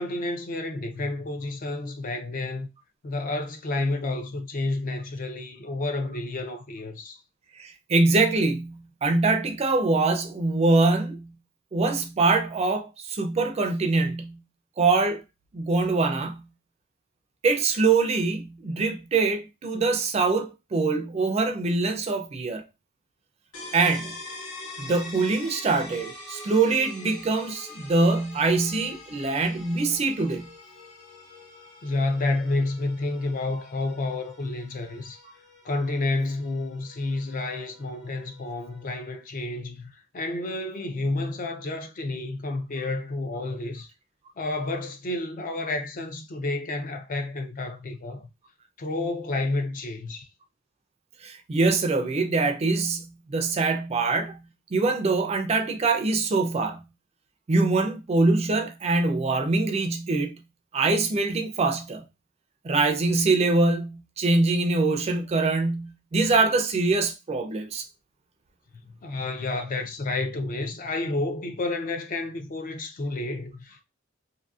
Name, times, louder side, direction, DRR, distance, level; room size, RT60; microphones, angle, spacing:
voice 1, 0.0-2.7 3.0-7.2 31.8-35.2 35.6-43.9 44.4-48.3 48.8-50.3 68.8-73.8, left 2 dB, 40° left, 0.4 m, -30 dB
voice 2, 7.6-11.3 11.7-14.4 14.8-15.2 15.5-16.5 17.4-22.6 23.7-24.2 24.8-30.5 51.2-54.4 54.7-56.8 57.5-60.4 60.7-62.0 62.6-67.8, right 3 dB, 30° right, 0.4 m, -24 dB
sound 1, 23.5-39.1, left 2 dB, 80° left, 1.2 m, -45 dB
2.6 x 2.6 x 2.3 m
head